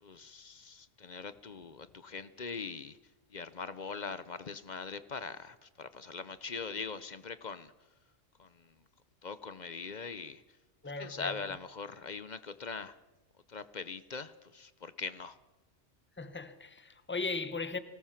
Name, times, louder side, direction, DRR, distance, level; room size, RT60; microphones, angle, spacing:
voice 1, 0.0-3.0 3.3-7.7 8.4-8.7 9.2-10.4 11.0-13.0 13.5-15.4, left 5 dB, 45° left, 0.7 m, -42 dB
voice 2, 10.8-11.4 16.2-17.8, left 3 dB, 10° left, 0.9 m, -37 dB
24.0 x 18.5 x 5.8 m
omnidirectional pair, 1.3 m